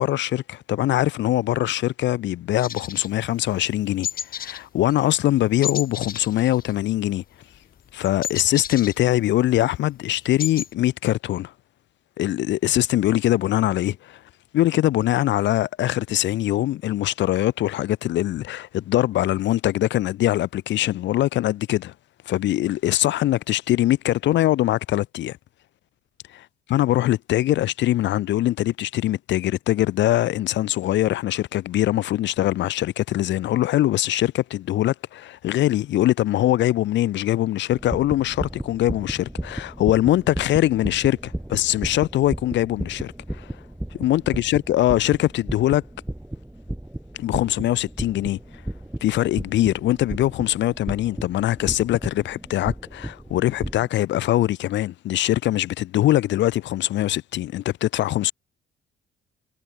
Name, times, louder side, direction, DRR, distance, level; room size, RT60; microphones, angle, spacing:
voice 1, 0.0-7.2 7.9-11.5 12.2-14.2 14.5-21.9 22.3-25.4 26.7-43.1 43.4-43.6 44.0-45.8 47.2-48.4 49.0-58.3, left 14 dB, 65° left, 0.5 m, -22 dB
sound 1, 2.6-3.7 4.0-4.6 4.9-5.1 5.6-7.2 7.4-9.5 9.9-10.0 10.2-10.7, left 8 dB, 45° left, 0.9 m, -32 dB
sound 2, 37.7-53.9, right 1 dB, 5° right, 5.2 m, -34 dB
cardioid pair, 90°, 20 cm